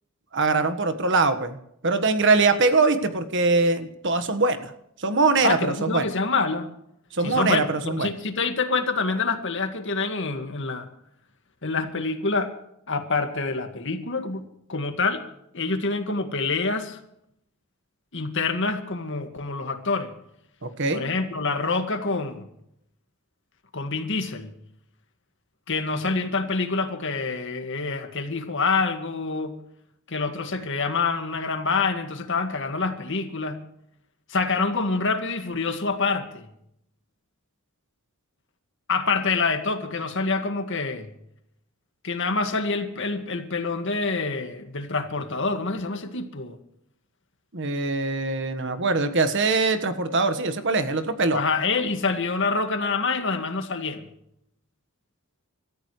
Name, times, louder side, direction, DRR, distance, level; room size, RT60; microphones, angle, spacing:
voice 1, 0.3-1.6 1.8-4.7 5.0-6.1 7.1-8.1 20.6-21.1 47.5-51.4, right 3 dB, 55° right, 10 dB, 1.4 m, -22 dB
voice 2, 5.4-6.7 7.2-10.9 11.6-12.5 12.9-15.2 15.5-17.0 18.1-20.1 20.9-22.5 23.7-24.5 25.7-29.6 30.1-33.6 34.3-36.4 38.9-41.1 42.0-46.6 51.3-54.0, left 4 dB, 60° left, 7 dB, 1.9 m, -26 dB
26.0 x 14.0 x 3.2 m, 0.75 s
head